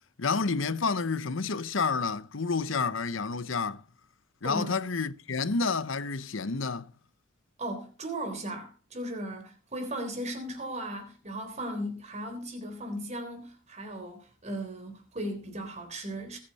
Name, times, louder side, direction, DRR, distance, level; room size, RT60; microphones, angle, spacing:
voice 1, 0.2-3.8 4.4-6.9, left 4 dB, 75° left, 0.8 m, -29 dB
voice 2, 4.4-4.8 7.6-16.4, right 1 dB, 35° right, 3.7 m, -37 dB
20.5 x 8.8 x 4.2 m
head